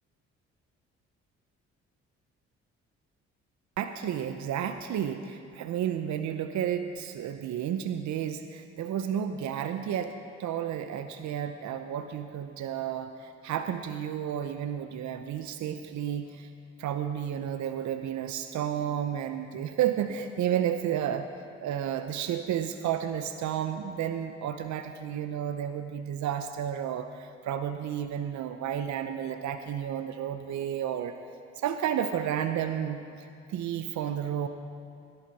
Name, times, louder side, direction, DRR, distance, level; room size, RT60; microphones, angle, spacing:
voice 1, 3.8-10.1 10.4-16.5 16.8-21.3 21.6-31.1 31.6-33.0 33.5-34.5, right 9 dB, 65° right, 9 dB, 0.8 m, -32 dB
17.0 x 11.5 x 4.2 m, 2.4 s
hypercardioid pair, 55°, 31 cm